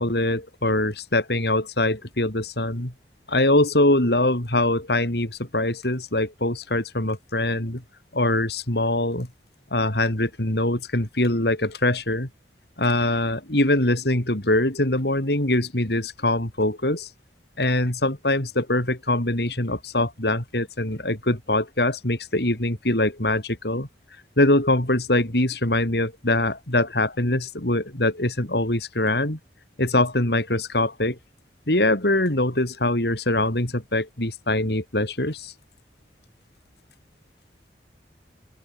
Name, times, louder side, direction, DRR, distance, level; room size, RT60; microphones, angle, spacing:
voice 1, 0.0-2.9 3.3-7.8 8.1-9.3 9.7-12.3 12.8-17.1 17.6-23.9 24.4-29.4 29.8-31.2 31.7-35.5, left 1 dB, 65° left, 4.0 m, -23 dB
open air
head